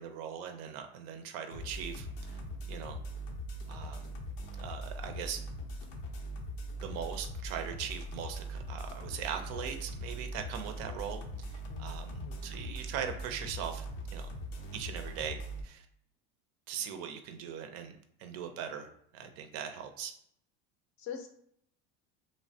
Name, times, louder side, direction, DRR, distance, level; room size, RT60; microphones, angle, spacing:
voice 1, 0.0-2.4 2.7-3.0 3.7-4.1 4.6-5.4 6.8-11.2 11.5-13.9 14.1-14.3 14.7-15.9 16.7-17.9 18.2-20.1, right 8 dB, 55° right, 6 dB, 0.5 m, -40 dB
sound 1, 1.5-15.6, right 1 dB, 85° left, 0.7 m, -41 dB
voice 2, 11.7-12.4 21.0-21.3, left 7 dB, 45° left, 4 dB, 0.5 m, -43 dB
3.0 x 2.1 x 2.6 m, 0.69 s
supercardioid pair, 130°, 30 cm